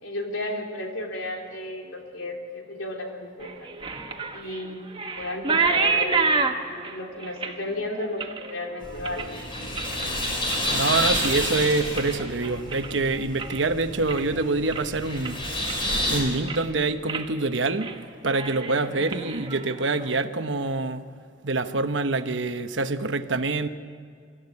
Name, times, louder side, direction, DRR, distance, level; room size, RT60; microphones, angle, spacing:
voice 1, 0.0-3.7 4.3-4.8 5.2-6.3 6.8-9.3 18.7-19.0, left 2 dB, 90° left, 3.5 m, -33 dB
sound 1, 3.4-10.1 10.4-10.9 11.2-13.6 13.9-14.4 14.7-14.8 15.2-16.0 16.3-16.7 17.1-17.3 17.6-18.0 18.2-20.1, right 4 dB, 25° right, 1.4 m, -29 dB
sound 2, 8.8-16.2, left 1 dB, 25° left, 5.4 m, -29 dB
voice 2, 10.7-15.4 16.1-17.9 18.2-21.0 21.4-23.7, right 3 dB, 75° right, 1.1 m, -26 dB
24.5 x 14.0 x 9.7 m
head